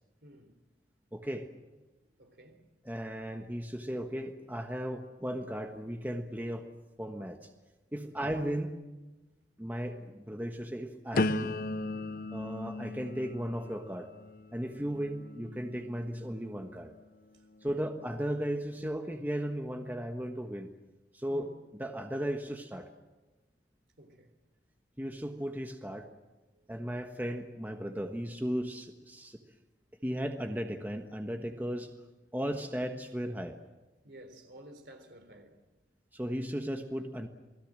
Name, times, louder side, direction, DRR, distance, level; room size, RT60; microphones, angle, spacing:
voice 1, 0.2-0.5 2.2-2.7 8.0-8.2 11.9-12.2 17.7-17.9 21.3-21.5 24.0-24.4 26.5-26.7 34.0-35.6, right 1 dB, 65° right, 3.8 m, -53 dB
voice 2, 1.1-1.5 2.8-6.7 7.0-7.5 7.9-8.8 9.6-11.5 12.3-14.1 14.5-16.9 17.6-20.7 21.1-22.9 25.0-26.1 26.7-29.4 30.0-31.9 32.3-33.6 36.1-37.3, equal, 10° right, 1.3 m, -36 dB
sound 1, 11.1-17.0 17.5-18.0, left 2 dB, 50° left, 0.8 m, -37 dB
28.5 x 20.0 x 7.6 m
head